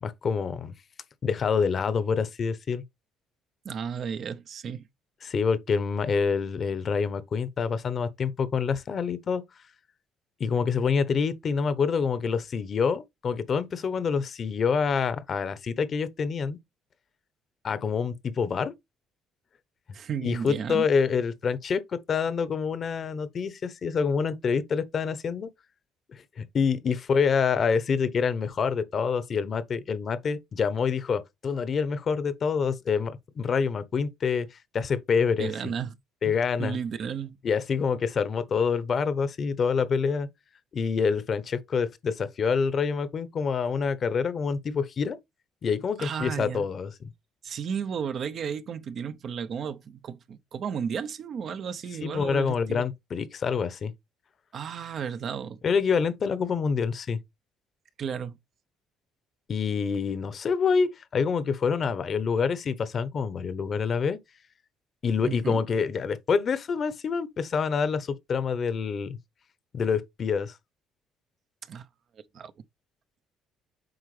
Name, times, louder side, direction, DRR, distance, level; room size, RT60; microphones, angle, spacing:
voice 1, 0.0-0.7 1.2-2.8 5.2-9.4 10.4-16.6 17.6-18.7 20.2-25.5 26.1-35.7 36.2-36.8 37.4-40.3 40.7-45.2 45.6-47.1 52.0-53.9 55.6-57.2 59.5-64.2 65.0-69.2 69.7-70.6, left 6 dB, 45° left, 0.8 m, -27 dB
voice 2, 3.6-4.9 19.9-20.9 35.4-35.9 36.2-37.4 46.0-46.7 47.4-52.9 54.5-55.6 58.0-58.4 65.2-65.6 71.7-71.9 72.3-72.5, right 7 dB, 55° right, 0.6 m, -33 dB
7.9 x 4.6 x 3.2 m
cardioid pair, 90°, 0 cm